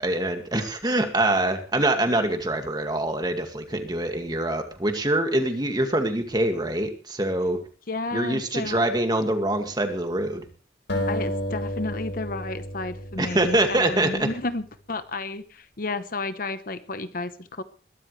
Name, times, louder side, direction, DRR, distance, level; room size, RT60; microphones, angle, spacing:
voice 1, 0.0-7.6 8.1-10.5 13.2-14.3, right 1 dB, 25° right, 5 dB, 2.1 m, -24 dB
voice 2, 7.9-8.8 11.1-17.6, left 2 dB, 50° left, 11 dB, 1.0 m, -32 dB
sound 1, 10.9-14.1, equal, 80° left, 4.2 m, -31 dB
22.0 x 12.5 x 3.3 m, 0.38 s
head